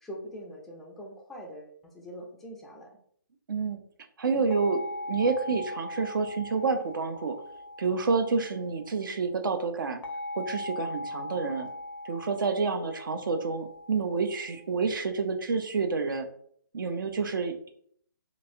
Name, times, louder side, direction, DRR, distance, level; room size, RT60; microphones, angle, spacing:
voice 1, 0.0-3.0, equal, ahead, -1 dB, 0.3 m, -43 dB
voice 2, 3.5-3.8 4.2-4.8 5.1-7.4 7.8-10.0 10.4-11.7 12.0-16.3 16.7-17.7, right 4 dB, 65° right, 7 dB, 0.5 m, -28 dB
sound 1, 4.5-9.2 10.0-14.7, left 1 dB, 75° left, 0.4 m, -40 dB
3.1 x 2.5 x 2.6 m, 0.63 s
figure-of-eight pair, 145°, 12 cm